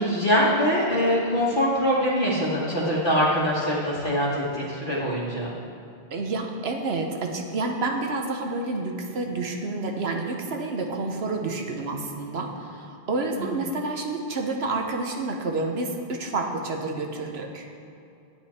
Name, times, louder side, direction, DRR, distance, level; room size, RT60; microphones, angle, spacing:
voice 1, 0.0-5.5 13.4-13.5, equal, 50° left, -9 dB, 1.6 m, -23 dB
voice 2, 6.1-17.7, right 3 dB, 85° right, 2 dB, 1.2 m, -29 dB
9.6 x 9.0 x 4.3 m, 2.6 s
omnidirectional pair, 1.0 m